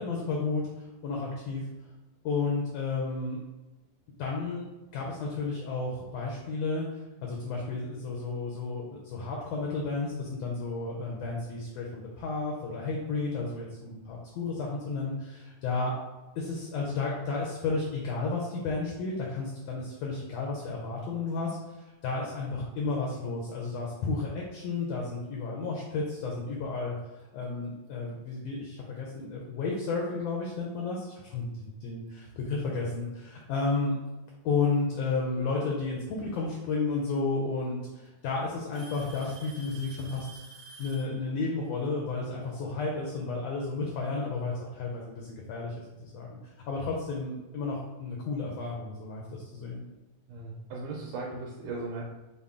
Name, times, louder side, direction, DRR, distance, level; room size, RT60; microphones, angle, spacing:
voice 1, 0.0-1.6 2.2-3.4 4.2-4.6 4.9-6.8 7.2-15.9 16.3-27.0 27.3-33.9 34.4-40.4 40.8-46.3 46.7-49.8, left 3 dB, 80° left, -2 dB, 1.4 m, -32 dB
Alarm / Tick-tock, 27.2-27.4 28.3-28.4 29.2-29.3 31.0-31.1 32.3-32.4 33.6-34.1 35.8-35.9 37.2-37.3 37.6-38.1 38.7-41.2, right 3 dB, 60° right, 1.9 m, -49 dB
voice 2, 50.3-52.0, right 3 dB, 90° right, -2 dB, 2.1 m, -37 dB
5.2 x 2.1 x 3.5 m, 1.1 s
omnidirectional pair, 3.6 m